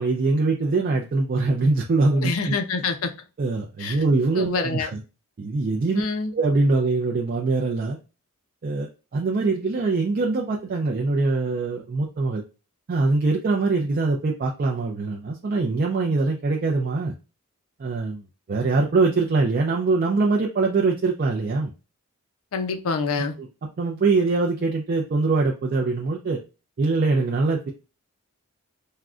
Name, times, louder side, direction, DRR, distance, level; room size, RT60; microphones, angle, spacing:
voice 1, 0.0-2.6 3.4-5.0 5.4-6.0 6.3-8.0 8.6-12.4 12.9-17.1 17.8-18.2 18.5-21.7 23.4-23.5 23.8-26.4 26.8-27.7, right 3 dB, 40° right, 0.3 m, -23 dB
voice 2, 2.2-3.1 3.8-4.0 4.4-5.0 5.9-6.3 22.5-23.3, left 4 dB, 70° left, 0.5 m, -26 dB
3.6 x 2.1 x 2.4 m
head